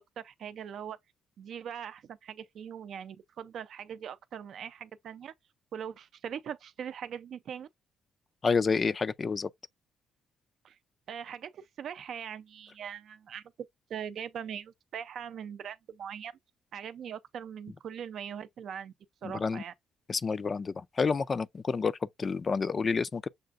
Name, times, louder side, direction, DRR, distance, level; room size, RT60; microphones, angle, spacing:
voice 1, 0.2-1.0 1.4-5.3 5.7-7.7 10.6-10.8 11.1-13.4 13.9-16.3 16.7-18.9 19.2-19.7, right 8 dB, 60° right, 0.5 m, -41 dB
voice 2, 8.4-9.5 19.2-19.6 20.1-23.3, left 5 dB, 35° left, 0.3 m, -29 dB
6.5 x 2.5 x 2.4 m
cardioid pair, 90°, 0 cm